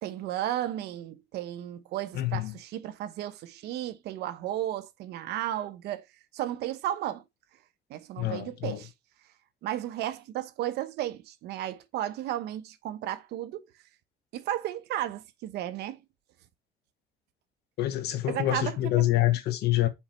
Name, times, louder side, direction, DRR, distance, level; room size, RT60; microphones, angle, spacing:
voice 1, 0.0-6.0 6.3-7.2 7.9-8.9 9.6-13.6 14.3-16.0 18.3-19.0, right 12 dB, 80° right, 0.9 m, -34 dB
voice 2, 2.1-2.5 8.2-8.8 17.8-19.9, left 14 dB, 75° left, 1.3 m, -26 dB
5.7 x 4.5 x 4.2 m
cardioid pair, 110°, 17 cm